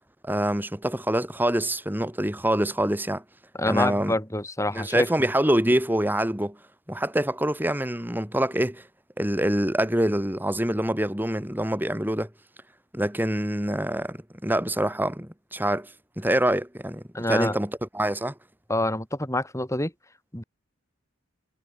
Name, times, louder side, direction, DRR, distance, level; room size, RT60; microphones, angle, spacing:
voice 1, 0.2-3.2 3.7-4.1 4.7-6.6 6.9-8.8 9.2-12.3 12.9-18.3, right 1 dB, 10° right, 3.3 m, -25 dB
voice 2, 3.5-5.3 17.1-17.6 18.7-19.9 20.3-20.4, left 1 dB, 15° left, 4.7 m, -27 dB
head